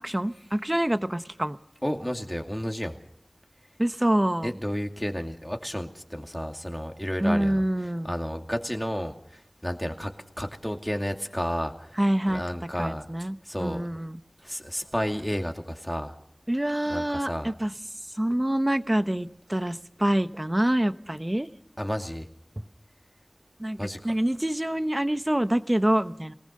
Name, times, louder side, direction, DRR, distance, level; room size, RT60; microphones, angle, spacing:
voice 1, 0.0-1.6 3.8-4.5 7.2-8.1 12.0-12.4 12.8-14.2 16.5-17.7 18.1-21.5 22.6-22.7 23.6-26.3, right 1 dB, 25° right, 11 dB, 1.0 m, -26 dB
voice 2, 1.8-2.9 4.4-7.6 8.0-10.1 10.4-12.0 12.3-13.0 13.4-13.8 14.4-16.1 16.9-17.5 21.8-22.3 23.8-24.0, equal, 10° left, 3 dB, 2.5 m, -31 dB
23.5 x 19.0 x 6.6 m, 0.67 s
wide cardioid pair, 45°, 0 cm